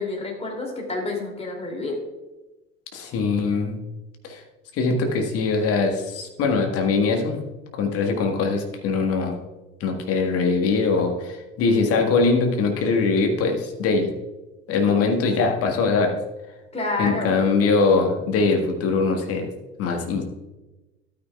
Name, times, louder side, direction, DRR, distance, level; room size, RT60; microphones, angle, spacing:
voice 1, 0.0-2.0 16.7-17.5, left 2 dB, 15° left, 0 dB, 2.8 m, -29 dB
voice 2, 2.9-3.8 4.2-4.4 4.7-7.4 7.7-9.4 9.8-14.1 14.7-16.2 17.0-19.5 19.8-20.2, left 4 dB, 40° left, 3 dB, 1.6 m, -22 dB
12.0 x 9.3 x 2.4 m, 1.1 s
figure-of-eight pair, 70°, 37 cm